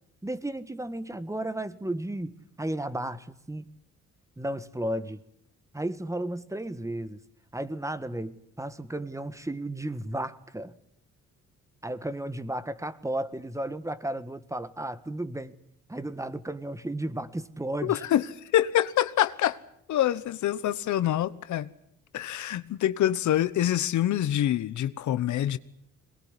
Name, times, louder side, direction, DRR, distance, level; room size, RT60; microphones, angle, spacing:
voice 1, 0.2-3.6 4.4-5.2 5.7-7.2 7.5-10.7 11.8-15.6 15.9-18.0, right 1 dB, 10° right, 1.5 m, -34 dB
voice 2, 17.8-18.3 18.5-19.6 19.9-21.7 22.1-25.6, left 12 dB, 70° left, 1.1 m, -25 dB
22.0 x 20.5 x 9.9 m
cardioid pair, 90°, 30 cm